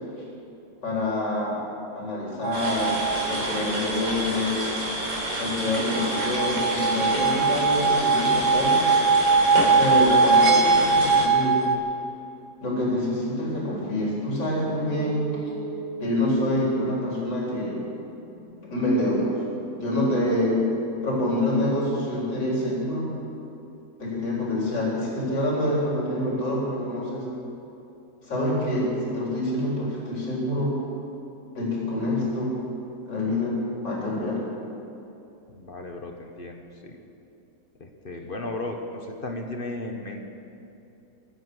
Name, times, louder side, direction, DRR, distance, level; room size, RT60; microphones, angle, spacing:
voice 1, 0.8-1.6 1.9-3.0 3.3-4.6 5.4-8.9 9.8-11.6 12.6-15.2 16.0-17.8 18.6-19.4 19.7-20.6 21.0-23.1 24.0-27.3 28.2-30.7 31.5-32.6 33.1-34.4, left 1 dB, 70° left, -5 dB, 4.8 m, -26 dB
sound 1, 2.4-3.5 5.9-11.8, right 4 dB, 60° right, 1.5 m, -21 dB
sound 2, 2.5-11.2, right 1 dB, 85° right, 4.3 m, -29 dB
sound 3, 14.8-21.8, right 4 dB, ahead, 4.6 m, -42 dB
voice 2, 35.5-37.0 37.8-40.3, left 2 dB, 35° left, 3 dB, 1.2 m, -35 dB
24.0 x 9.1 x 6.4 m, 2.9 s
omnidirectional pair, 2.0 m